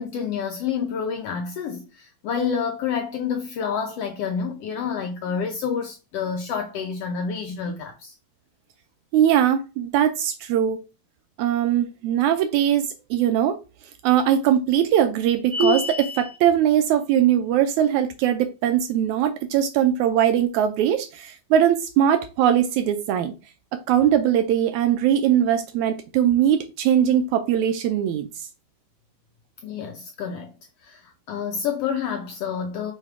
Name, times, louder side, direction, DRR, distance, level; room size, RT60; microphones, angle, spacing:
voice 1, 0.0-8.1 29.6-30.5 30.8-32.9, left 6 dB, 80° left, 1.4 m, -28 dB
voice 2, 9.1-10.8 11.4-13.6 14.0-23.3 23.7-28.5, right 10 dB, 80° right, 1.8 m, -21 dB
sound 1, 15.5-16.4, equal, 25° right, 1.0 m, -24 dB
6.5 x 3.3 x 4.7 m
omnidirectional pair, 3.6 m